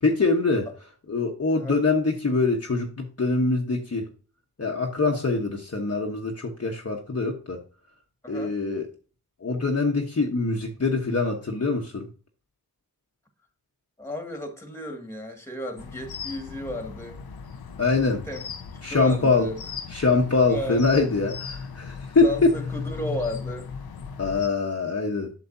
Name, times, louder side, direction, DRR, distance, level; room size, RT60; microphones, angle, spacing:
voice 1, 0.0-0.7 1.1-4.0 4.6-7.6 8.3-8.9 9.4-12.1 17.8-18.3 18.8-19.5 19.9-22.5 24.2-25.3, left 3 dB, 40° left, 1.1 m, -24 dB
voice 2, 8.2-8.6 14.0-17.2 18.3-19.6 20.5-20.8 22.2-23.7, left 1 dB, 5° left, 2.0 m, -34 dB
sound 1, 15.8-24.5, left 5 dB, 75° left, 0.8 m, -37 dB
8.0 x 6.6 x 2.7 m
cardioid pair, 55°, 38 cm